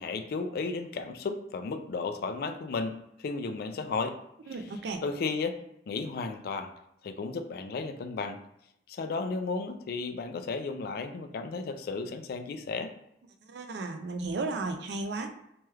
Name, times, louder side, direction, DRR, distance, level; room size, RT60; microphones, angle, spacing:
voice 1, 0.0-4.2 5.0-5.5 5.9-6.7 7.0-8.4 8.9-12.9, left 4 dB, 55° left, 8 dB, 0.3 m, -34 dB
voice 2, 4.5-5.0 13.5-15.3, right 3 dB, 65° right, 5 dB, 0.4 m, -34 dB
3.0 x 2.3 x 3.1 m, 0.77 s
head